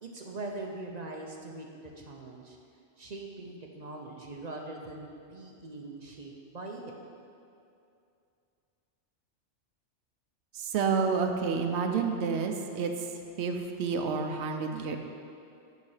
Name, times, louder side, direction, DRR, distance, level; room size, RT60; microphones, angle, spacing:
voice 1, 0.0-2.6 3.0-6.9, right 2 dB, 45° right, 1 dB, 0.6 m, -42 dB
voice 2, 10.5-15.0, right 5 dB, 75° right, 4 dB, 0.9 m, -30 dB
6.8 x 5.6 x 4.8 m, 2.5 s
omnidirectional pair, 1.2 m